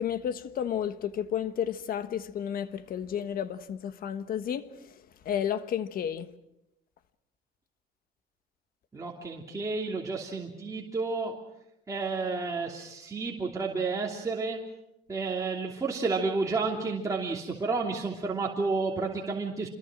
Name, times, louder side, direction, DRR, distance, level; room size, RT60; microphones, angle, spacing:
voice 1, 0.0-5.0 5.2-6.3, left 9 dB, 60° left, 1.4 m, -32 dB
voice 2, 8.9-11.4 11.9-14.6 15.1-19.7, right 4 dB, 20° right, 3.0 m, -31 dB
27.0 x 22.0 x 6.2 m
cardioid pair, 110°, 17 cm